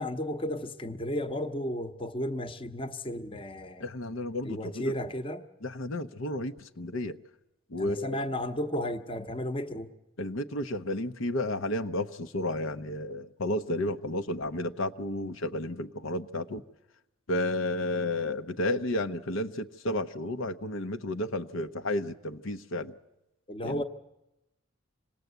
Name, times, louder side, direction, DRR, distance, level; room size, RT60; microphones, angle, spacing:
voice 1, 0.0-3.8 4.4-5.4 7.8-9.9 23.5-23.8, left 1 dB, 25° left, 0.9 m, -33 dB
voice 2, 3.8-4.9 5.6-7.2 7.7-8.2 10.2-16.6 17.3-22.9 23.6-23.8, left 1 dB, 75° left, 0.8 m, -32 dB
26.5 x 19.0 x 8.1 m
head